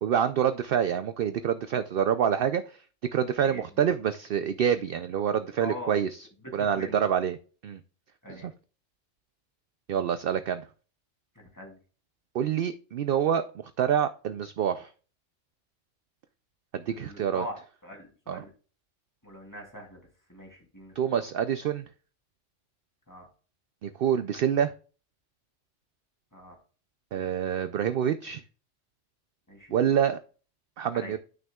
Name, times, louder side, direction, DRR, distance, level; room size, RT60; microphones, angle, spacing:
voice 1, 0.0-2.8 3.1-6.3 6.5-7.4 7.6-7.8 8.3-8.5 9.9-10.7 12.3-14.9 16.7-17.5 18.3-18.4 21.0-21.9 23.8-24.7 27.1-28.4 29.7-30.2 30.8-31.2, right 8 dB, 60° right, 11 dB, 0.7 m, -27 dB
voice 2, 3.4-3.9 5.6-6.0 6.4-7.0 8.2-8.5 11.4-11.8 16.9-17.5 17.8-18.5 19.2-20.0 20.3-21.2 23.1-23.3 26.3-26.6 29.5-29.8 30.9-31.2, left 1 dB, 15° left, 0 dB, 2.8 m, -42 dB
11.5 x 6.3 x 2.3 m, 0.38 s
omnidirectional pair, 1.3 m